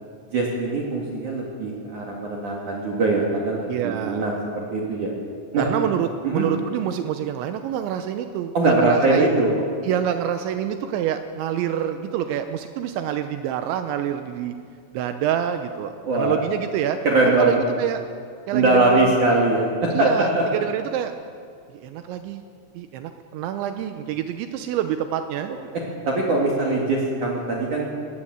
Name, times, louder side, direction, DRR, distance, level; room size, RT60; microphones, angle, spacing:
voice 1, 0.3-5.1 5.5-5.7 6.2-6.4 8.5-9.6 16.0-16.4 17.0-17.6 18.5-20.1 20.3-20.4 26.1-27.9, right 2 dB, 50° right, -2 dB, 3.1 m, -21 dB
voice 2, 3.7-4.3 5.6-9.3 9.8-14.6 14.9-17.0 17.3-18.0 18.5-19.2 19.9-21.1 21.7-22.4 22.7-25.5, right 10 dB, 80° right, 8 dB, 3.0 m, -26 dB
20.0 x 17.5 x 7.7 m, 2.2 s
omnidirectional pair, 5.5 m